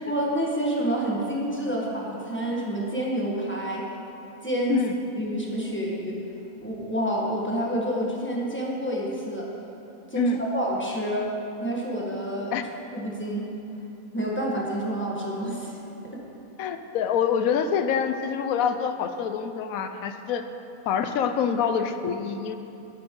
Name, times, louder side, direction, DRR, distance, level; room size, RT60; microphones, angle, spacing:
voice 1, 0.1-3.8 4.4-4.8 5.2-6.2 6.6-9.5 10.1-11.3 11.6-12.5 12.9-13.5 14.1-15.8, right 1 dB, 10° left, -4 dB, 1.3 m, -28 dB
voice 2, 16.6-20.4 20.9-22.6, left 7 dB, 70° left, 8 dB, 1.0 m, -26 dB
11.5 x 9.5 x 3.8 m, 2.9 s
omnidirectional pair, 1.7 m